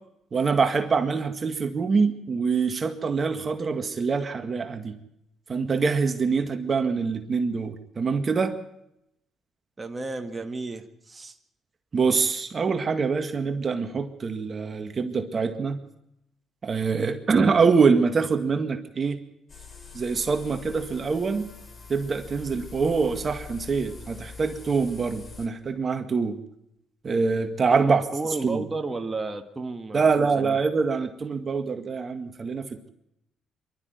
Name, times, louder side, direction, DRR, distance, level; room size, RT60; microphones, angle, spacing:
voice 1, 0.3-5.0 5.5-8.6 11.9-15.8 16.6-19.2 19.9-21.5 21.9-26.4 27.0-28.0 28.4-28.7 29.9-32.9, right 5 dB, 40° right, 7 dB, 1.9 m, -24 dB
voice 2, 9.8-11.4 27.7-30.6, right 3 dB, 20° right, 5 dB, 1.9 m, -33 dB
sound 1, 19.5-25.5, left 5 dB, 35° left, 4.0 m, -44 dB
24.5 x 12.5 x 9.4 m, 0.81 s
cardioid pair, 95°, 0 cm